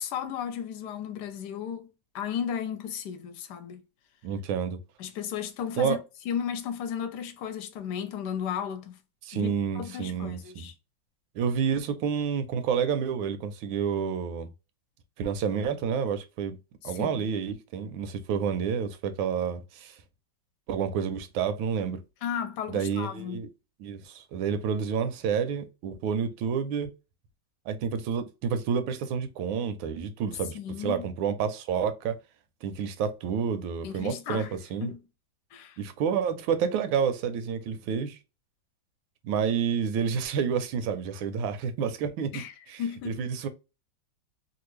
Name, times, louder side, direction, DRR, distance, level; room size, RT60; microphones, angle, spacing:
voice 1, 0.0-1.9 2.1-3.8 5.0-6.0 6.2-9.0 9.3-10.7 16.8-17.2 22.2-23.4 30.5-31.1 33.8-34.5 34.8-35.0 35.5-35.8 42.3-42.5 42.8-43.3, left 8 dB, 70° left, 1.1 m, -34 dB
voice 2, 4.2-4.8 5.8-6.0 9.2-10.7 11.3-14.5 15.2-16.6 16.8-19.9 20.7-22.0 22.7-23.5 23.8-26.9 27.7-32.2 32.6-34.9 35.8-38.2 39.2-43.5, right 7 dB, 85° right, 1.4 m, -29 dB
3.3 x 2.4 x 3.1 m
omnidirectional pair, 2.1 m